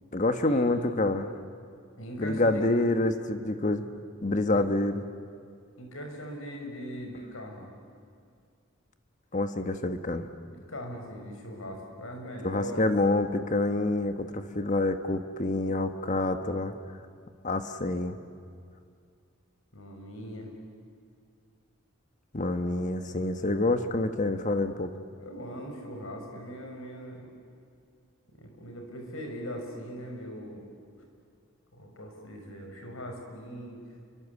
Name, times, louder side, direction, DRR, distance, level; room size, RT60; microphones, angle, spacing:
voice 1, 0.1-1.3 2.2-3.8 4.2-5.0 9.3-10.3 12.4-16.7 17.4-18.2 22.3-24.9, left 2 dB, 35° left, 8 dB, 1.3 m, -27 dB
voice 2, 2.0-2.6 4.5-4.6 5.8-7.7 10.5-12.9 19.7-20.5 25.2-27.3 28.4-30.6 31.7-33.8, equal, 80° left, 2 dB, 6.1 m, -40 dB
29.0 x 24.5 x 8.4 m, 2.3 s
head